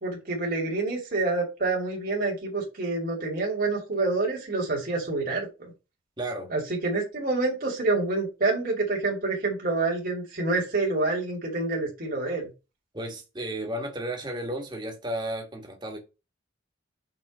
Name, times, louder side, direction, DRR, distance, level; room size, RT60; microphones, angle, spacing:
voice 1, 0.0-5.7 6.5-12.5, right 3 dB, 45° right, 2.5 m, -27 dB
voice 2, 6.2-6.5 12.9-16.0, right 1 dB, 20° right, 1.7 m, -33 dB
6.3 x 4.3 x 6.1 m
head